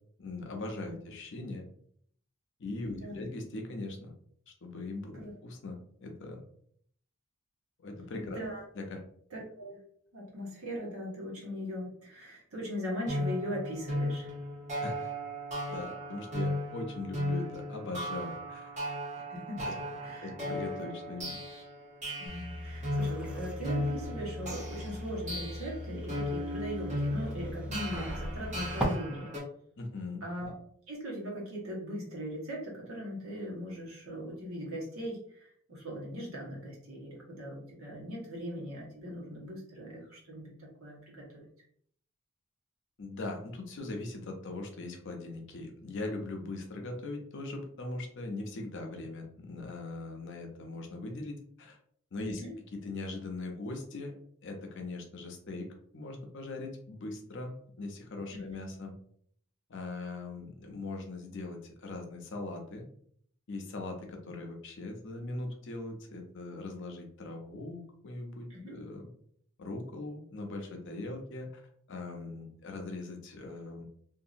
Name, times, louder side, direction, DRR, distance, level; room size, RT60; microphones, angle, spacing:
voice 1, 0.2-1.6 2.6-4.1 4.5-6.4 7.8-8.4 8.8-9.0 14.8-15.1 15.7-19.0 19.6-19.8 20.2-21.4 29.8-30.2 43.0-51.8 52.1-52.4 52.7-54.1 54.4-55.7 55.9-59.0 59.7-62.9 63.5-69.1 69.6-71.6 71.9-73.9, left 2 dB, 60° left, 3 dB, 0.6 m, -40 dB
voice 2, 2.8-3.2 5.1-5.3 8.2-8.6 9.3-9.8 10.1-14.3 19.3-19.6 20.0-20.3 22.2-29.3 30.2-30.5 30.9-40.5 40.8-41.5 52.3-52.5 58.3-58.4 68.5-68.8, equal, 75° right, -4 dB, 1.3 m, -39 dB
sound 1, 13.1-29.4, equal, 35° right, 1.1 m, -36 dB
sound 2, 22.3-28.8, equal, 5° right, 0.5 m, -39 dB
2.8 x 2.6 x 2.5 m, 0.63 s
head